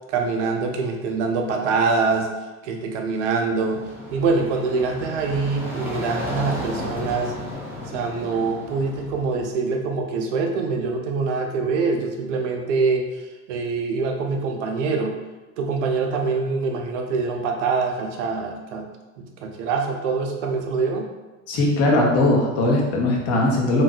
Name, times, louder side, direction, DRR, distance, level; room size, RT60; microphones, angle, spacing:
voice 1, 0.1-2.3 2.6-3.8 4.1-7.3 7.9-13.1 13.5-15.2 15.6-18.9 19.2-21.1, right 4 dB, 60° right, 3 dB, 0.6 m, -24 dB
sound 1, 3.4-9.4, equal, 5° right, 0.6 m, -33 dB
voice 2, 21.5-23.8, left 2 dB, 35° left, -1 dB, 0.8 m, -19 dB
2.7 x 2.3 x 2.3 m, 1.1 s
figure-of-eight pair, 70°, 41 cm